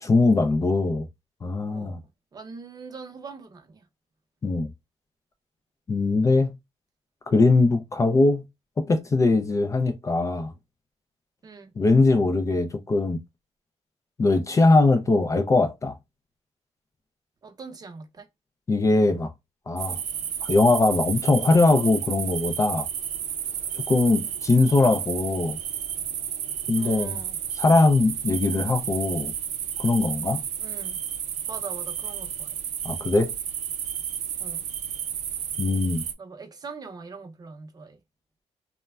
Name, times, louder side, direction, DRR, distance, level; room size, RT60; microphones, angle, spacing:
voice 1, 0.0-1.1 1.4-2.0 4.4-4.7 5.9-6.5 7.3-8.4 8.8-10.5 11.8-13.2 14.2-16.0 18.7-19.3 19.7-20.0 20.4-22.9 23.9-25.6 26.7-27.2 27.6-29.3 29.8-30.4 32.8-33.3 35.6-36.0, left 3 dB, 25° left, 0.3 m, -21 dB
voice 2, 1.7-2.0 2.3-3.9 11.4-11.7 17.4-18.3 26.7-27.4 30.6-31.0 31.5-32.6 34.4-34.6 36.2-38.0, right 4 dB, 35° right, 0.6 m, -42 dB
sound 1, 19.8-36.1, right 9 dB, 75° right, 0.4 m, -32 dB
3.2 x 2.1 x 2.2 m
wide cardioid pair, 150°, 12 cm